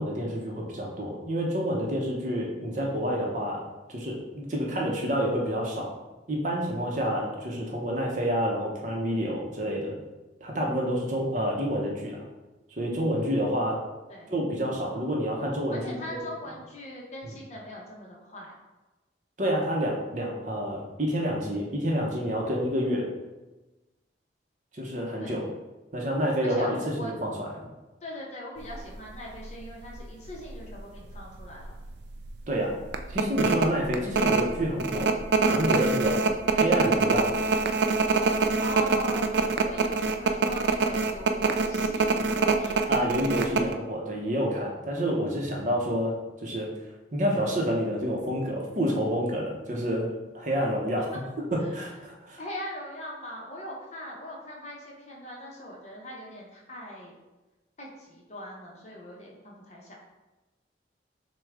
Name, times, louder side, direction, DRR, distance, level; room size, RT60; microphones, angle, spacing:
voice 1, 0.0-3.6 3.9-5.9 6.3-10.0 10.4-12.2 12.7-13.8 14.3-16.0 19.4-23.1 24.7-25.4 25.9-27.3 27.6-27.7 32.5-32.7 33.1-35.1 35.4-36.2 36.5-37.3 42.9-46.1 46.4-46.7 47.1-51.1 51.5-52.4, equal, 45° right, -1 dB, 0.8 m, -28 dB
voice 2, 13.2-13.5 14.1-14.3 15.7-18.5 25.2-25.4 26.4-27.1 28.0-31.7 38.6-42.8 51.6-51.8 52.4-57.2 57.8-59.9, left 1 dB, 40° left, -2 dB, 0.9 m, -41 dB
sound 1, 28.7-28.9 29.4-29.5 29.8-30.8 31.1-31.2 31.6-31.9 32.2-32.3 32.9-43.7, right 4 dB, 70° right, 0.4 m, -24 dB
6.1 x 2.3 x 3.6 m, 1.1 s
head